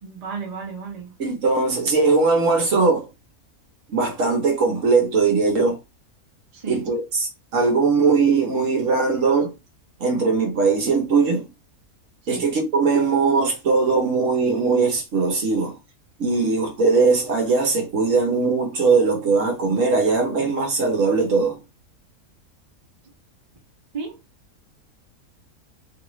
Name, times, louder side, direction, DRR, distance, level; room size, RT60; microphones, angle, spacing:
voice 1, 0.0-1.1 6.5-6.9 12.2-12.4 23.9-24.2, right 5 dB, 35° right, 0.7 m, -33 dB
voice 2, 1.2-3.1 3.9-5.8 6.7-9.5 10.0-11.5 12.3-15.8 16.2-21.6, right 4 dB, 60° right, 1.2 m, -20 dB
3.1 x 2.3 x 3.1 m
omnidirectional pair, 1.6 m